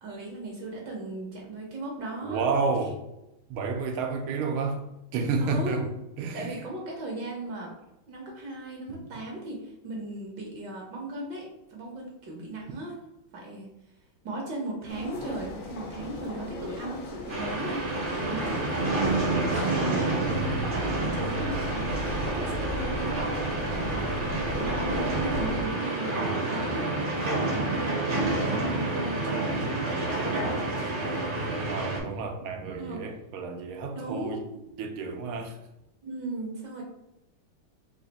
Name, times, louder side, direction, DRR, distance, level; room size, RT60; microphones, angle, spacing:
voice 1, 0.0-2.4 5.4-5.9 6.3-7.7 8.1-13.0 13.3-13.7 14.2-17.8 18.2-19.1 19.5-23.2 23.8-24.0 24.6-26.9 27.3-30.9 32.8-33.0 33.9-34.6 36.0-36.8, right 2 dB, 65° right, 1.3 m, -37 dB
voice 2, 2.2-3.0 3.5-4.8 5.1-5.8 6.2-6.5 20.3-20.4 31.7-34.5 34.8-35.6, right 4 dB, 90° right, 1.5 m, -30 dB
sound 1, 14.9-25.6, left 1 dB, 90° left, 1.8 m, -36 dB
sound 2, 17.3-32.0, right 2 dB, 45° right, 0.7 m, -29 dB
sound 3, 19.5-31.9, left 4 dB, 70° left, 1.1 m, -46 dB
4.2 x 2.4 x 4.0 m
omnidirectional pair, 2.3 m